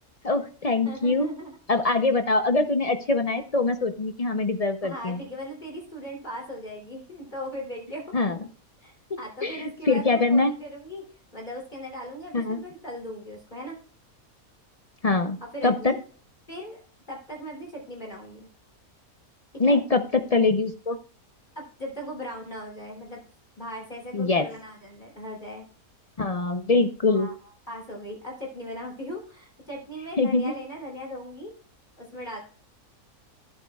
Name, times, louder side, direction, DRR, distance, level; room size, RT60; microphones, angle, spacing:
voice 1, 0.2-1.3 1.7-5.2 8.1-8.4 9.4-10.5 12.3-12.6 15.0-15.4 15.6-15.9 19.6-21.0 24.1-24.4 26.2-27.3 30.2-30.5, left 3 dB, 55° left, 8 dB, 0.4 m, -23 dB
voice 2, 0.8-1.6 4.8-8.1 8.8-13.8 15.4-16.0 16.5-16.8 17.1-18.5 19.5-19.8 21.5-23.2 23.6-25.6 27.1-27.3 27.7-31.5 32.0-32.4, equal, 30° left, -1 dB, 3.2 m, -38 dB
15.0 x 8.3 x 2.3 m, 0.42 s
omnidirectional pair, 1.6 m